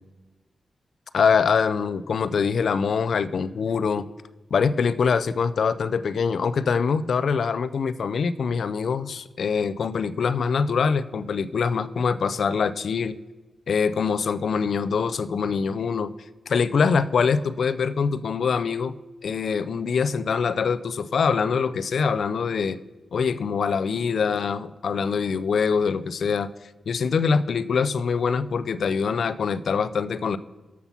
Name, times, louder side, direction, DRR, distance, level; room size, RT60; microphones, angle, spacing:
voice 1, 1.1-4.1 4.5-13.2 13.7-16.1 16.5-18.9 19.2-22.8 23.1-26.5 26.9-30.4, left 5 dB, 70° left, 14 dB, 0.3 m, -24 dB
7.3 x 5.7 x 5.4 m, 1.2 s
wide cardioid pair, 95°, 0 cm